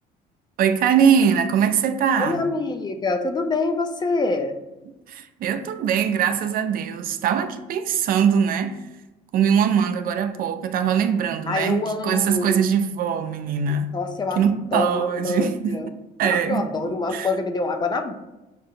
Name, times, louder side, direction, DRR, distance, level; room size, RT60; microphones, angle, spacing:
voice 1, 0.6-2.4 5.1-8.8 9.3-14.0 14.4-15.8 16.2-16.7 17.1-17.3, right 7 dB, 60° right, 0.4 m, -22 dB
voice 2, 2.2-4.6 11.5-12.5 13.9-14.5 14.7-15.9 16.2-18.1, left 3 dB, 25° left, 0.4 m, -25 dB
6.5 x 2.5 x 2.8 m
cardioid pair, 110°, 17 cm